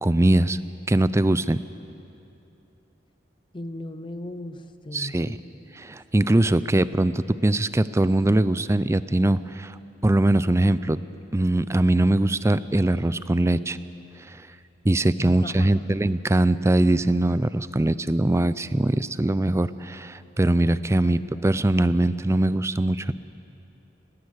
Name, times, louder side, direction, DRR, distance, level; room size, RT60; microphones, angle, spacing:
voice 1, 0.0-0.6 0.9-1.6 4.9-5.4 5.7-9.8 10.0-11.0 11.3-13.8 14.2-14.4 14.8-23.1, right 1 dB, 15° right, 15 dB, 0.4 m, -22 dB
voice 2, 3.5-5.3 15.2-15.8 21.1-21.2, left 1 dB, 25° left, 11 dB, 0.7 m, -37 dB
20.0 x 18.0 x 8.1 m, 2.7 s
head